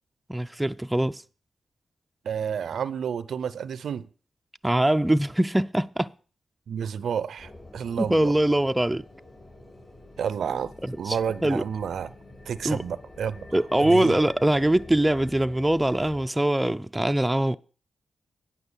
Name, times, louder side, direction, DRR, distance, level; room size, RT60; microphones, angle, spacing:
voice 1, 0.3-1.2 4.6-6.1 8.0-9.0 10.8-11.2 11.4-11.6 12.6-12.8 13.5-17.6, right 1 dB, 10° right, 0.4 m, -23 dB
voice 2, 2.2-4.1 6.7-8.3 10.2-10.7 11.0-12.1 12.5-13.5 13.8-14.2, right 7 dB, 80° right, 0.5 m, -30 dB
sound 1, 7.4-16.3, left 2 dB, 40° left, 5.8 m, -47 dB
9.8 x 5.8 x 7.0 m
cardioid pair, 60°, 0 cm